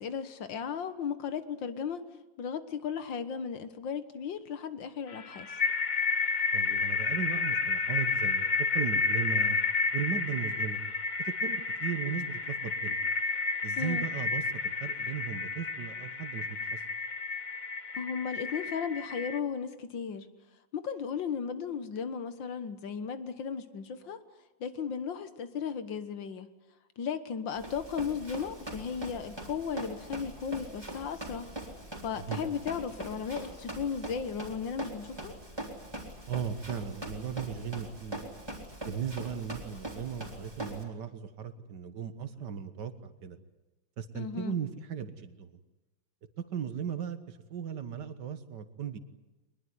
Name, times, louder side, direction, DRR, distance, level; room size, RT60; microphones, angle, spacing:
voice 1, 0.0-2.0 2.4-5.6 13.8-14.1 17.9-20.3 20.7-24.2 24.6-26.5 27.0-31.5 32.0-35.3 44.2-44.6, left 6 dB, 75° left, 12 dB, 2.1 m, -35 dB
sound 1, 5.1-19.4, left 4 dB, 35° left, 0.8 m, -31 dB
voice 2, 6.5-9.6 9.9-10.8 11.2-13.1 13.6-16.8 32.2-32.4 36.3-38.2 38.9-43.4 44.0-45.6 46.4-49.0, right 7 dB, 65° right, 12 dB, 2.0 m, -37 dB
Run, 27.6-40.8, right 1 dB, 10° right, 3.6 m, -42 dB
23.0 x 20.5 x 9.6 m, 1.1 s
omnidirectional pair, 2.1 m